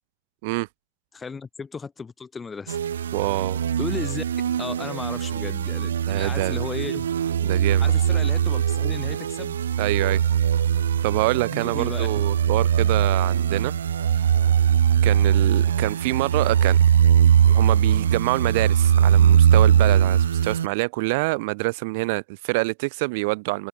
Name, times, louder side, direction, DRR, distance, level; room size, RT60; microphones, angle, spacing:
voice 1, 1.1-2.8 3.8-4.2 4.6-7.1 7.8-9.5 11.3-12.1, left 5 dB, 15° left, 6.3 m, -35 dB
sound 1, 2.7-20.7, right 9 dB, 65° right, 0.7 m, -20 dB
voice 2, 3.1-3.6 6.1-6.6 7.4-7.9 9.8-10.2 11.0-13.7 15.0-16.8 17.5-23.7, right 26 dB, 50° right, 3.7 m, -26 dB
open air
figure-of-eight pair, 90°, 0 cm